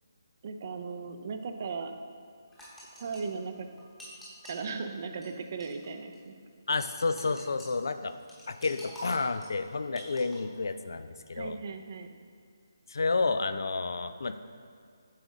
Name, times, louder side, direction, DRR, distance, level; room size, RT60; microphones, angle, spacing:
voice 1, 0.4-1.9 2.9-3.7 4.5-6.3 11.3-12.1, right 4 dB, 40° right, 7 dB, 0.5 m, -37 dB
sound 1, 2.5-4.6 5.2-5.3 5.6-5.9 6.1-6.2 6.8-7.7 8.1-10.4, equal, 5° left, 1.0 m, -48 dB
voice 2, 6.7-8.1 8.5-11.6 12.9-14.4, left 3 dB, 70° left, 11 dB, 0.4 m, -30 dB
7.5 x 5.1 x 3.6 m, 2.3 s
figure-of-eight pair, 155°, 2 cm